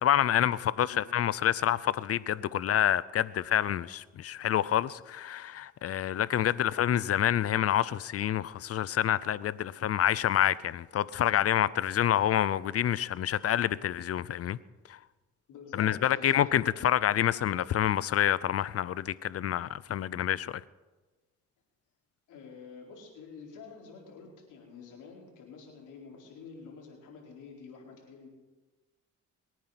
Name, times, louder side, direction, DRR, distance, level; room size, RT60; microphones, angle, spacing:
voice 1, 0.0-14.6 14.9-15.0 15.8-20.6, left 11 dB, 50° left, 0.6 m, -27 dB
voice 2, 15.5-16.7 22.3-28.3, left 5 dB, 85° left, 4.5 m, -48 dB
23.0 x 9.3 x 5.8 m
cardioid pair, 90°, 30 cm